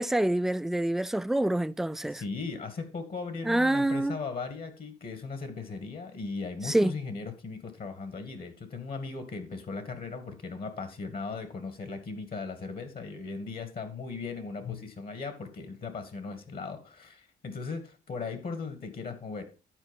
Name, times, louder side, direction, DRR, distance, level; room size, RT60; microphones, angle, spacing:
voice 1, 0.0-2.2 3.5-4.2 6.6-6.9, right 1 dB, ahead, 0.4 m, -26 dB
voice 2, 2.1-19.4, left 4 dB, 50° left, 2.1 m, -38 dB
11.5 x 4.7 x 5.3 m
cardioid pair, 90°, 20 cm